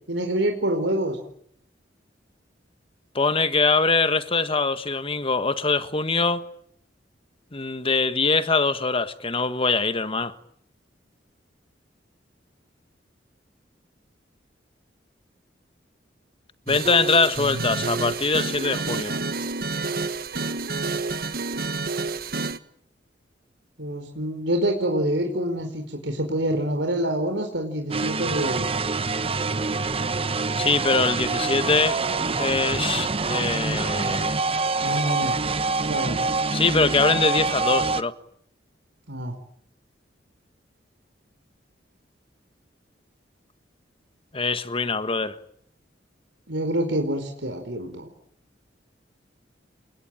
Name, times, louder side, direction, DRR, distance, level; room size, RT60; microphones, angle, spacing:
voice 1, 0.1-1.2 23.8-28.9 34.8-35.4 35.8-36.3 39.1-39.3 46.5-48.1, right 1 dB, 80° right, 4.6 m, -26 dB
voice 2, 3.1-6.4 7.5-10.3 16.7-19.2 30.6-32.0 32.4-34.4 36.5-38.1 44.3-45.4, left 4 dB, 30° left, 1.6 m, -23 dB
sound 1, 16.7-22.6, right 3 dB, 55° right, 1.6 m, -29 dB
sound 2, 27.9-38.0, right 3 dB, 35° right, 1.1 m, -26 dB
29.5 x 21.5 x 9.1 m
head